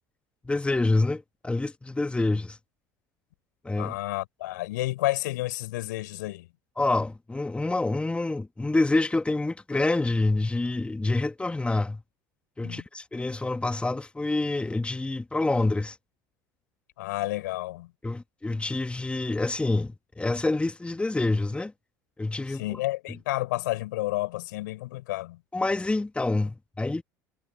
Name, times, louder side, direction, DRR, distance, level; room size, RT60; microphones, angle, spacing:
voice 1, 0.5-2.6 3.6-3.9 6.8-12.0 12.6-16.0 18.0-21.7 22.2-22.6 25.5-27.0, left 2 dB, 10° left, 1.8 m, -27 dB
voice 2, 3.8-6.5 12.6-12.8 17.0-17.9 22.5-25.4, left 18 dB, 75° left, 5.0 m, -31 dB
hypercardioid pair, 75°, 10 cm